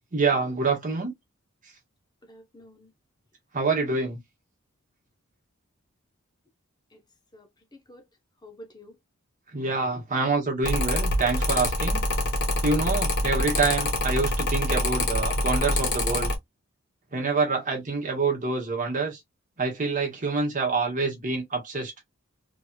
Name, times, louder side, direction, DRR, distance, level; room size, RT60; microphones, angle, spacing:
voice 1, 0.1-1.1 3.5-4.2 9.5-12.0 12.6-16.3 17.1-19.2 19.6-21.9, right 4 dB, 40° right, 1.2 m, -26 dB
voice 2, 2.2-2.9 6.9-7.0 7.3-8.1 8.4-9.0, equal, 20° left, 0.8 m, -49 dB
Mechanical fan, 10.6-16.4, left 1 dB, 55° left, 1.2 m, -25 dB
3.1 x 2.6 x 2.2 m
head